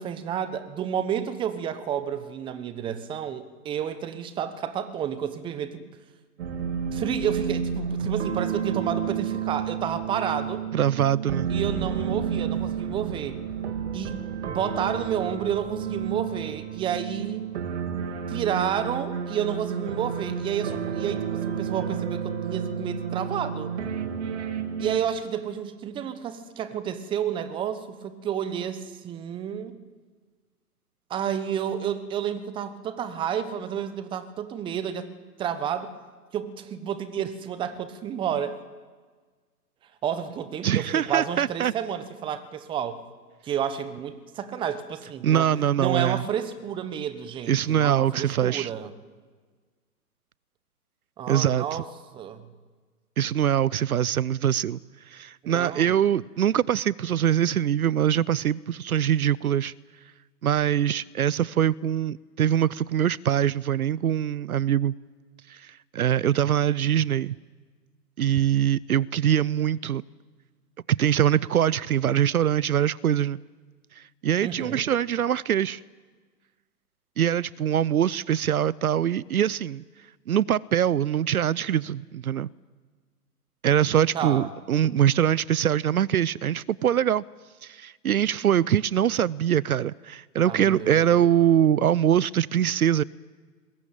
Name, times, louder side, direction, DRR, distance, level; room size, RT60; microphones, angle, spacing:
voice 1, 0.0-5.8 6.9-10.6 11.5-13.4 13.9-17.4 18.3-23.7 24.8-29.8 31.1-35.1 35.4-35.9 36.3-38.6 40.0-43.0 43.4-48.9 51.2-51.9 52.1-52.4 55.4-56.0 74.4-74.8 84.1-84.5 90.4-91.3, right 8 dB, 10° right, 1.0 m, -30 dB
sound 1, 6.4-25.0, right 7 dB, 45° right, 3.1 m, -31 dB
voice 2, 10.7-11.5 40.6-41.7 45.2-46.2 47.5-48.7 51.3-51.8 53.2-54.8 55.1-59.7 60.4-64.9 65.5-67.4 68.2-70.0 71.0-73.4 74.0-75.8 77.2-79.8 80.3-82.5 83.6-87.2 87.6-93.0, right 10 dB, 70° right, 0.6 m, -23 dB
21.0 x 21.0 x 9.0 m
figure-of-eight pair, 130°, 46 cm